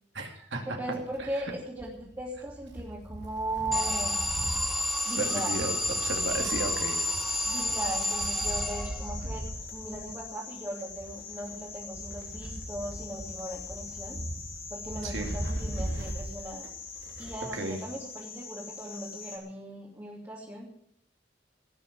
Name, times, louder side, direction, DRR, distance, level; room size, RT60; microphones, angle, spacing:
voice 1, 0.1-0.6 1.3-1.4 5.2-5.7 6.0-7.1 15.0-15.3 17.5-17.8, right 2 dB, 85° right, 3 dB, 2.5 m, -34 dB
voice 2, 0.7-4.2 5.0-5.6 6.4-6.6 7.5-9.4 9.7-14.2 14.7-16.7 17.2-20.7, right 1 dB, 15° right, -5 dB, 2.9 m, -38 dB
Wind, 0.9-17.5 17.8-17.9 18.9-19.0, right 1 dB, 65° right, 3.0 m, -40 dB
Alarm, 3.7-9.3, left 1 dB, ahead, 1.7 m, -30 dB
sound 1, 4.9-19.4, left 5 dB, 35° left, 2.6 m, -43 dB
18.0 x 6.9 x 9.4 m, 0.70 s
head